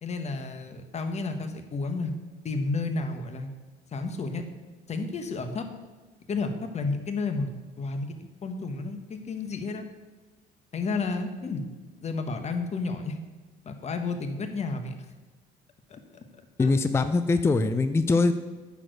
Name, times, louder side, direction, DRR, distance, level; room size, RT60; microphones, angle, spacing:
voice 1, 0.0-2.1 2.4-3.5 3.9-4.4 4.9-5.7 6.3-7.5 7.8-9.9 10.7-11.6 12.0-13.2 13.6-14.9 15.9-16.2 16.6-16.7, left 3 dB, 35° left, 7 dB, 1.1 m, -31 dB
voice 2, 16.6-18.3, left 3 dB, 15° left, 10 dB, 0.4 m, -22 dB
9.8 x 4.5 x 6.2 m, 1.3 s
cardioid pair, 110°, 20 cm